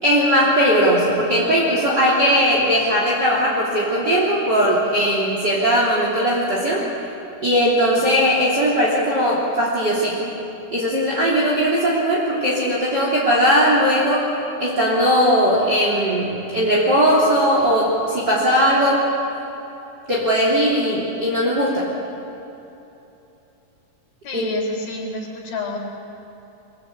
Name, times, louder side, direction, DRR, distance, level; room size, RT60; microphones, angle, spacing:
voice 1, 0.0-6.8 7.4-10.3 10.7-14.3 14.6-19.0 20.1-21.9 24.3-24.6, equal, 30° right, -5 dB, 3.5 m, -18 dB
voice 2, 24.2-25.8, left 3 dB, 80° left, 0 dB, 5.8 m, -30 dB
25.5 x 21.0 x 8.6 m, 3.0 s
omnidirectional pair, 4.2 m